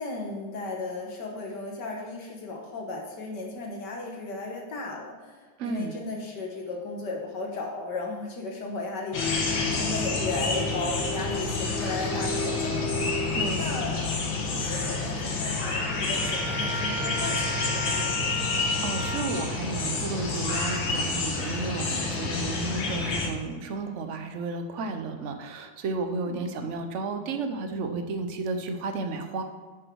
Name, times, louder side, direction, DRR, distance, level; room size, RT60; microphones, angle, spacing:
voice 1, 0.0-13.2 13.6-14.1 14.5-18.2 26.2-26.4, left 3 dB, 65° left, 1 dB, 1.8 m, -35 dB
voice 2, 5.6-5.9 13.3-14.0 18.3-29.4, right 3 dB, 55° right, 7 dB, 0.9 m, -33 dB
sound 1, 9.1-23.3, left 3 dB, 85° left, 2.1 m, -28 dB
Trumpet, 16.1-19.5, left 1 dB, ahead, 1.4 m, -35 dB
9.9 x 6.2 x 4.6 m, 1.4 s
omnidirectional pair, 2.0 m